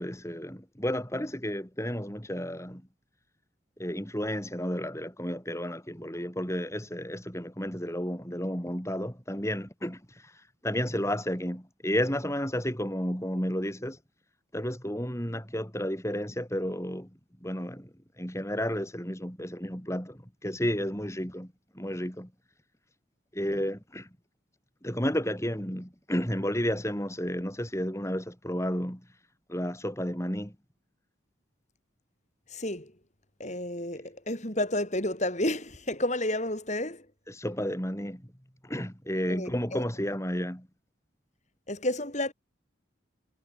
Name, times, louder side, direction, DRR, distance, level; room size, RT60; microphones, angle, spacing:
voice 1, 0.0-2.8 3.8-14.0 14.5-22.3 23.3-24.1 24.8-29.0 29.5-30.6 37.3-38.3 38.6-40.7, equal, 15° left, 6.0 m, -32 dB
voice 2, 32.5-33.0 33.4-37.1 39.3-39.8 41.7-42.3, left 1 dB, 35° left, 6.7 m, -31 dB
head